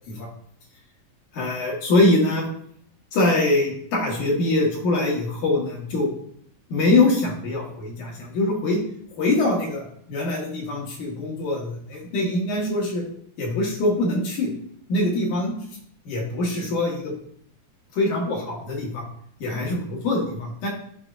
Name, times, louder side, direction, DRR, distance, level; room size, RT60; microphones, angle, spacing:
voice 1, 1.3-2.5 3.1-6.1 6.7-8.8 9.2-13.0 13.4-14.5 14.9-15.5 16.1-17.1 17.9-19.1 19.4-20.7, left 2 dB, 75° left, -2 dB, 3.0 m, -23 dB
10.5 x 3.6 x 2.5 m, 0.65 s
omnidirectional pair, 3.6 m